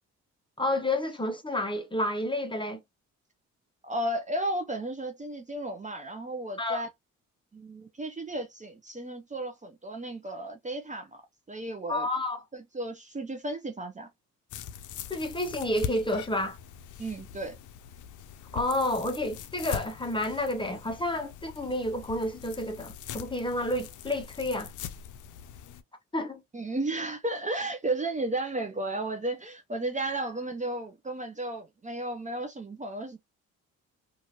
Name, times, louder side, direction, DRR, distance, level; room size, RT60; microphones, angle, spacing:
voice 1, 0.6-2.8 6.6-6.8 11.9-12.4 15.1-16.6 18.5-24.7 26.1-26.4, left 1 dB, 15° left, 0.8 m, -30 dB
voice 2, 3.8-6.9 7.5-11.2 11.5-12.1 12.5-14.1 17.0-17.6 26.5-33.2, right 2 dB, 20° right, 0.7 m, -34 dB
sound 1, 14.5-25.8, left 8 dB, 65° left, 0.5 m, -42 dB
2.8 x 2.5 x 2.8 m
supercardioid pair, 60°, 34 cm